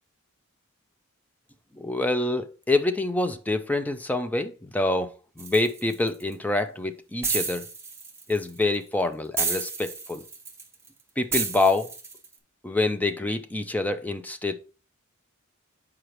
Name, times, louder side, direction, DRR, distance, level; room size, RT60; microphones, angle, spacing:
voice 1, 1.8-7.7 8.3-10.2 11.2-11.9 12.6-14.5, left 2 dB, 10° left, 0.4 m, -26 dB
sound 1, 5.4-6.3 7.2-8.6 9.4-10.9 11.3-12.2, right 4 dB, 15° right, 0.9 m, -30 dB
6.4 x 4.8 x 3.1 m
head